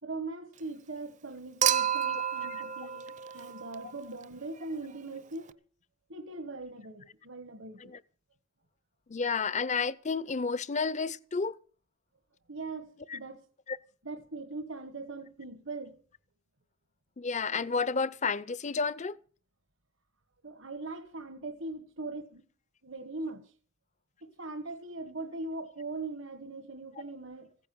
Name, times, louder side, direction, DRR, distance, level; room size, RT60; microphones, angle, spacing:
voice 1, 0.0-5.6 6.1-7.9 12.5-13.5 14.0-16.0 20.4-22.4 22.8-23.5 24.2-27.5, right 3 dB, 70° right, 1.3 m, -40 dB
Human group actions / Chink clink / Liquid, 1.6-4.0 5.5-5.6, right 9 dB, 40° right, 0.7 m, -30 dB
voice 2, 9.1-11.5 13.1-13.2 13.7-13.8 17.2-19.2, left 4 dB, 40° left, 0.6 m, -31 dB
16.0 x 9.8 x 7.6 m
head